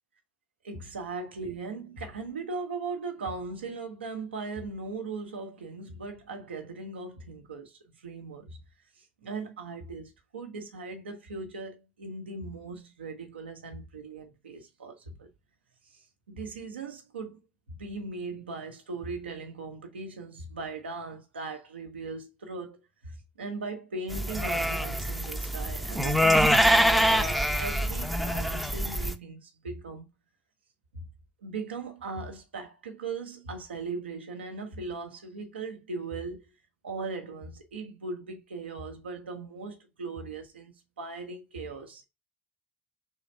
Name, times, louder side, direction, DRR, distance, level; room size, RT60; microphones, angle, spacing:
voice 1, 0.6-8.6 9.0-15.3 15.9-17.4 17.7-30.0 30.9-31.1 31.4-36.4 36.8-42.1, right 3 dB, 90° right, 0.9 m, -39 dB
sound 1, 24.1-29.2, equal, ahead, 0.7 m, -25 dB
3.7 x 3.3 x 4.1 m
hypercardioid pair, 65°, 6 cm